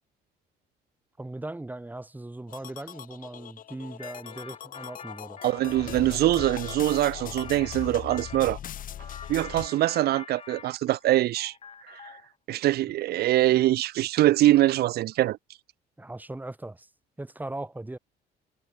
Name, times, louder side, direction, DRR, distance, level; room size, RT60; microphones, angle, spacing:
voice 1, 1.2-5.4 16.0-16.9 17.2-18.0, right 2 dB, 10° right, 7.0 m, -39 dB
sound 1, 2.5-9.7, left 10 dB, 55° left, 2.4 m, -40 dB
sound 2, 4.0-8.5 9.0-11.1 11.4-12.3, left 6 dB, 35° left, 4.2 m, -46 dB
voice 2, 5.4-8.6 9.3-11.5 12.5-15.4, right 15 dB, 70° right, 1.0 m, -23 dB
cardioid pair, 110°, 17 cm